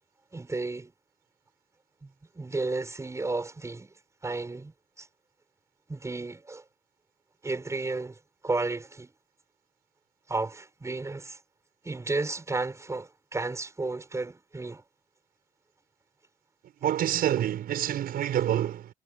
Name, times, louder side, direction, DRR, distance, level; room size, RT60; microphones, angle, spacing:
voice 1, 0.3-0.9 2.0-3.9 4.2-5.1 5.9-6.6 7.4-8.2 8.4-9.1 10.3-11.4 11.8-14.8, right 3 dB, 15° right, 6.9 m, -33 dB
voice 2, 16.8-18.9, right 11 dB, 60° right, 5.9 m, -27 dB
cardioid pair, 110°, 17 cm